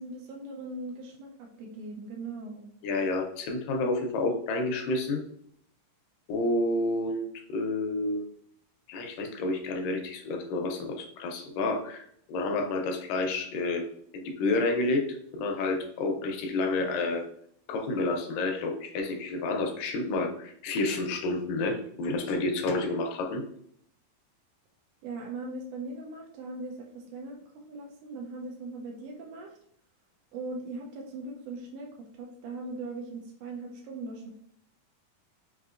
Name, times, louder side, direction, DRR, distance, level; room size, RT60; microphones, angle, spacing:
voice 1, 0.0-2.6 25.0-27.4 27.7-29.6 30.3-34.4, right 2 dB, 85° right, 0 dB, 1.8 m, -40 dB
voice 2, 2.8-5.2 6.3-8.2 8.9-13.8 14.1-15.1 15.3-17.2 17.7-23.4, left 2 dB, 80° left, 3 dB, 2.1 m, -29 dB
5.6 x 2.7 x 2.4 m, 0.66 s
omnidirectional pair, 4.1 m